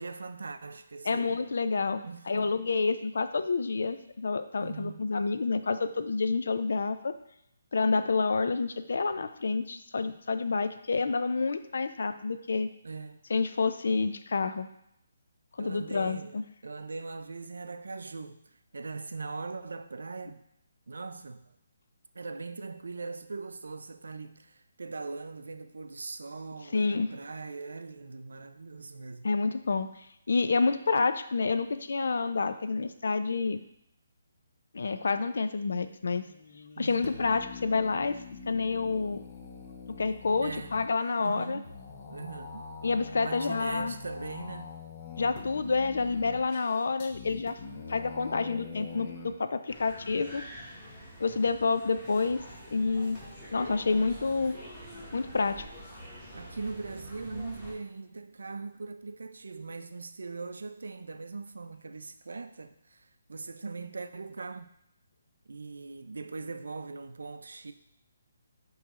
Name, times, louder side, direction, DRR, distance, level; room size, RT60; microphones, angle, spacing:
voice 1, 0.0-1.4 2.0-2.5 4.6-5.1 12.8-13.2 15.6-20.4 20.9-21.6 22.1-29.3 36.8-37.1 38.9-39.0 39.4-39.5 40.4-40.7 41.2-41.7 42.1-42.7 43.2-44.7 56.3-64.7 65.5-67.7, right 4 dB, 90° right, 0.5 m, -40 dB
voice 2, 1.0-7.1 7.7-12.7 13.3-14.7 15.6-16.4 26.7-27.1 29.2-29.9 30.3-33.6 34.7-36.2 36.8-38.1 38.5-39.2 40.0-41.6 42.8-43.9 45.2-47.6 47.9-50.4 51.2-52.4 52.7-53.2 53.5-54.6 55.1-55.6, left 4 dB, 65° left, 0.5 m, -28 dB
sound 1, 36.0-49.3, left 5 dB, 30° left, 0.7 m, -44 dB
sound 2, 49.7-57.7, equal, 5° left, 1.5 m, -46 dB
8.5 x 3.1 x 3.7 m
hypercardioid pair, 170°, 0 cm